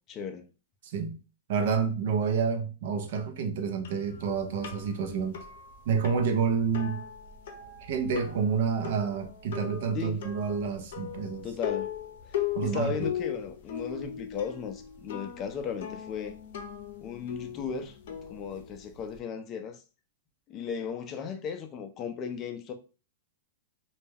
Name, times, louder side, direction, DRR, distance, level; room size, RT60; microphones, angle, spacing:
voice 1, 0.1-0.4 9.9-10.2 11.4-11.9 12.3-16.4 17.0-18.0 18.3-19.8 20.5-22.7, left 6 dB, 25° left, 0.4 m, -36 dB
voice 2, 0.8-1.2 1.5-5.4 5.9-7.1 7.9-11.5 12.5-13.0, right 6 dB, 60° right, 0.5 m, -29 dB
sound 1, 3.8-19.2, left 9 dB, 70° left, 0.6 m, -39 dB
2.2 x 2.1 x 3.2 m
hypercardioid pair, 150°, 0 cm